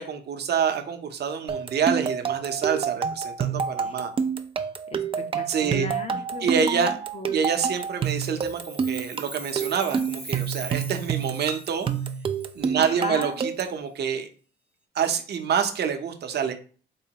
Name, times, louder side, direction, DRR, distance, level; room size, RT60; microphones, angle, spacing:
voice 1, 0.0-4.1 5.5-5.9 6.4-6.9 7.3-11.9 12.6-14.3 14.9-16.5, right 7 dB, 55° right, 6 dB, 0.7 m, -27 dB
sound 1, 1.5-13.8, right 6 dB, 30° right, 0.4 m, -28 dB
voice 2, 4.9-7.4 12.7-13.4, left 2 dB, 30° left, 7 dB, 0.7 m, -36 dB
Chime, 7.7-12.9, right 2 dB, 5° right, 0.7 m, -42 dB
3.4 x 3.1 x 2.9 m, 0.40 s
cardioid pair, 90°, 20 cm